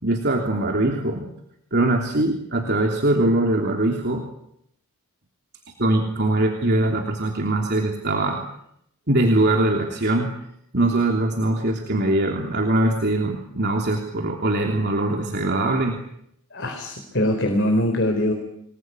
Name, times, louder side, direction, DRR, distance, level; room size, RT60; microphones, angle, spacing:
voice 1, 0.0-1.3 1.7-4.2 5.8-8.4 9.1-10.3 10.7-16.0, right 2 dB, 50° right, 2 dB, 3.2 m, -22 dB
voice 2, 16.5-18.3, left 1 dB, 55° left, 4 dB, 4.4 m, -22 dB
27.5 x 21.0 x 9.6 m, 0.76 s
head